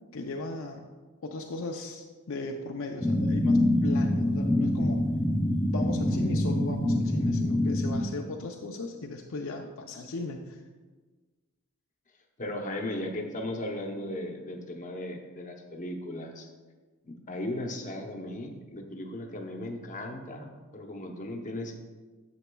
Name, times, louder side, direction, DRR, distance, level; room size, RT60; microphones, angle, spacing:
voice 1, 0.1-0.9 1.2-5.1 5.7-10.6, left 3 dB, 65° left, 2 dB, 0.5 m, -37 dB
sound 1, 3.0-8.0, left 1 dB, 10° left, 0.5 m, -25 dB
voice 2, 12.4-16.5 17.0-21.8, left 1 dB, 35° left, 2 dB, 0.8 m, -36 dB
9.9 x 7.1 x 2.3 m, 1.3 s
head